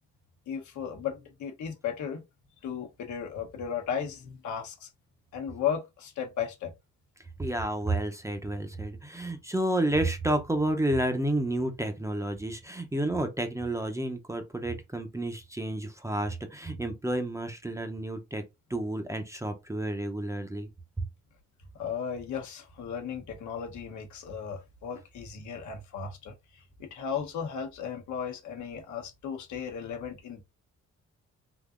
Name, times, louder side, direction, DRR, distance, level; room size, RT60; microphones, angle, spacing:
voice 1, 0.5-2.2 2.6-4.9 5.3-6.7 21.8-26.3 26.8-30.4, left 7 dB, 70° left, 1.0 m, -35 dB
voice 2, 7.4-18.4 18.7-20.7 21.0-21.1, right 1 dB, 10° right, 0.6 m, -30 dB
3.6 x 2.6 x 2.5 m
cardioid pair, 90°, 30 cm